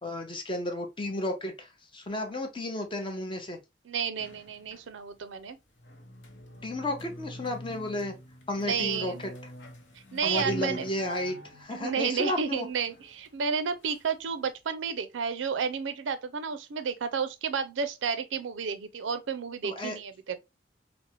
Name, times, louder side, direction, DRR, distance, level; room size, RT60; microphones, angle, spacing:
voice 1, 0.0-3.6 6.6-8.1 8.5-9.3 10.2-12.7 19.6-20.0, left 1 dB, 30° left, 0.6 m, -33 dB
voice 2, 3.9-5.6 8.6-9.2 10.1-10.8 11.7-20.4, right 6 dB, 85° right, 0.4 m, -31 dB
sound 1, 4.2-5.2 5.6-14.5, equal, 70° left, 0.7 m, -45 dB
3.3 x 2.0 x 2.8 m
head